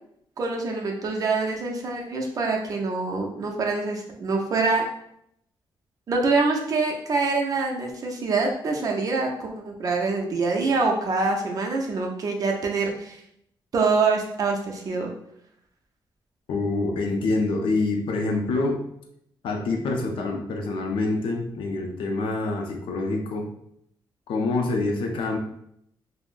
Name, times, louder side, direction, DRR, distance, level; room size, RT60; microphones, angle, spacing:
voice 1, 0.4-4.9 6.1-13.2 13.7-15.1, right 3 dB, 40° right, 1 dB, 0.5 m, -25 dB
voice 2, 16.5-18.8 19.4-23.5 24.3-25.4, left 3 dB, 80° left, 2 dB, 0.5 m, -26 dB
3.6 x 2.0 x 2.4 m, 0.73 s
wide cardioid pair, 145°, 9 cm